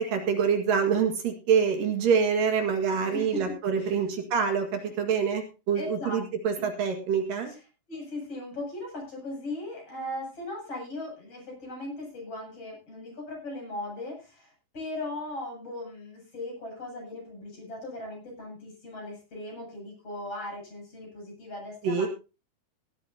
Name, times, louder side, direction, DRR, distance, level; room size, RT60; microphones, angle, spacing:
voice 1, 0.0-7.5 21.8-22.1, right 6 dB, 70° right, 5 dB, 3.5 m, -26 dB
voice 2, 2.9-4.1 5.8-6.2 6.6-6.7 7.5-7.6 7.9-22.1, left 2 dB, 40° left, 0 dB, 8.8 m, -38 dB
17.0 x 13.5 x 2.8 m, 0.30 s
omnidirectional pair, 4.2 m